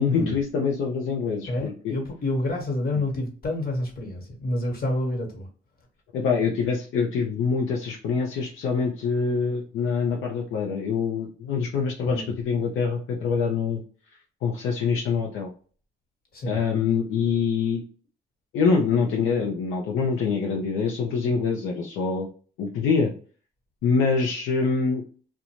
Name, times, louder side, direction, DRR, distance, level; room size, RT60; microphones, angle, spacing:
voice 1, 0.0-1.9 6.1-13.8 14.4-15.5 16.5-17.8 18.5-22.3 22.6-23.1 23.8-25.0, left 5 dB, 80° left, 0.5 m, -25 dB
voice 2, 1.5-5.5 12.0-12.3 16.3-16.6, left 1 dB, 50° left, 1.3 m, -28 dB
2.5 x 2.2 x 2.9 m
cardioid pair, 90°, 20 cm